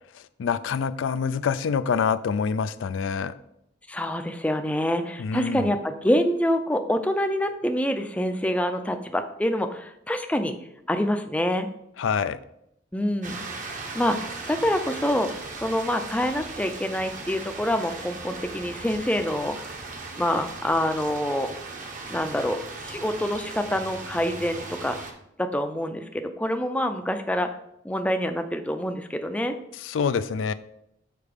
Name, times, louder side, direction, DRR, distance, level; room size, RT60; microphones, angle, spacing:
voice 1, 0.1-3.3 5.2-5.7 12.0-12.4 29.8-30.5, left 6 dB, 90° left, 13 dB, 0.4 m, -26 dB
voice 2, 3.9-10.6 10.9-11.7 12.9-13.5 13.9-14.2 14.5-15.3 15.6-19.6 20.2-21.5 22.1-25.0 25.4-27.5 27.8-29.6, equal, 5° left, 7 dB, 0.4 m, -26 dB
sound 1, 13.2-25.1, right 3 dB, 45° right, 0.8 m, -38 dB
6.8 x 4.1 x 5.1 m, 0.77 s
head